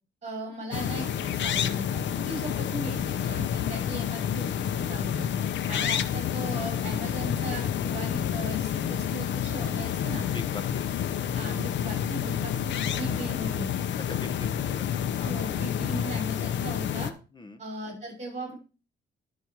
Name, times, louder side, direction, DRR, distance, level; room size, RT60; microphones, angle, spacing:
voice 1, 0.2-1.9 2.1-5.3 5.7-10.3 11.3-13.7 15.2-17.1 17.6-18.5, right 1 dB, 35° right, 1 dB, 5.7 m, -37 dB
sound 1, 0.7-17.1, left 9 dB, 65° left, 0.8 m, -29 dB
voice 2, 14.1-15.4 17.3-17.6, left 2 dB, 20° left, 8 dB, 1.2 m, -42 dB
11.5 x 4.4 x 4.7 m, 0.34 s
cardioid pair, 90°, 20 cm